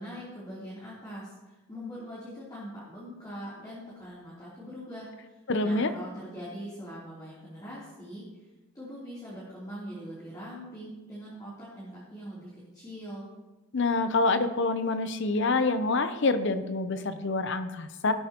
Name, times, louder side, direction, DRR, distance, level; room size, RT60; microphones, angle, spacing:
voice 1, 0.0-8.4 8.7-13.3, equal, 20° left, -9 dB, 3.3 m, -42 dB
voice 2, 5.5-5.9 13.7-18.1, left 3 dB, 55° left, 10 dB, 0.8 m, -26 dB
18.0 x 8.4 x 3.0 m, 1.1 s
head